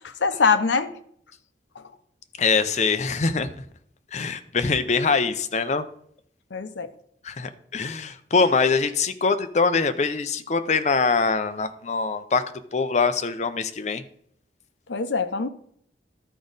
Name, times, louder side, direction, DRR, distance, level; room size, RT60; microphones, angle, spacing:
voice 1, 0.2-0.9 6.5-6.9 14.9-15.5, left 5 dB, 80° left, 10 dB, 0.6 m, -23 dB
voice 2, 2.4-3.5 4.1-5.8 7.2-12.4 12.7-14.0, left 4 dB, 40° left, 10 dB, 0.5 m, -23 dB
12.5 x 5.0 x 4.0 m, 0.66 s
head